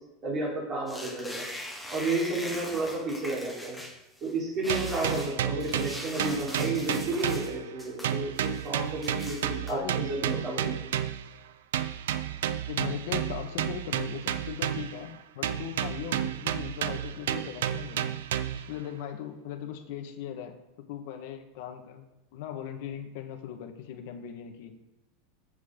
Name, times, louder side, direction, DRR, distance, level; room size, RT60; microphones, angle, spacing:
voice 1, 0.2-1.5 1.9-3.8 4.2-10.7, right 2 dB, 25° right, -4 dB, 4.3 m, -32 dB
sound 1, 0.9-4.3 4.6-7.5 7.8-8.7 9.0-9.7, left 1 dB, ahead, 1.4 m, -41 dB
sound 2, 4.7-7.8 8.0-11.3 11.7-15.1 15.4-18.7, right 10 dB, 90° right, 0.7 m, -31 dB
voice 2, 9.7-10.0 12.7-18.2 18.5-20.6 20.9-22.0 22.3-24.7, left 9 dB, 55° left, 5 dB, 1.7 m, -39 dB
14.5 x 8.1 x 4.0 m, 0.96 s
supercardioid pair, 170°, 0 cm